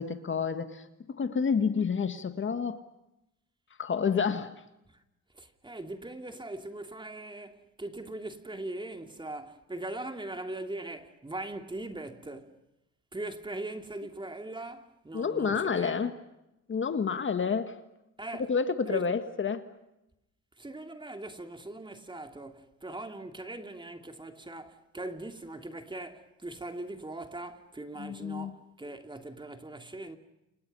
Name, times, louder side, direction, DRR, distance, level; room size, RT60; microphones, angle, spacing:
voice 1, 0.0-2.8 3.8-4.5 15.1-16.1 16.7-17.8 18.4-19.7 28.0-28.5, left 6 dB, 40° left, 1.8 m, -29 dB
voice 2, 5.3-12.6 13.1-16.0 18.2-18.5 18.9-19.0 20.6-30.2, right 2 dB, 15° right, 2.8 m, -40 dB
29.5 x 29.0 x 5.5 m
cardioid pair, 90°, 30 cm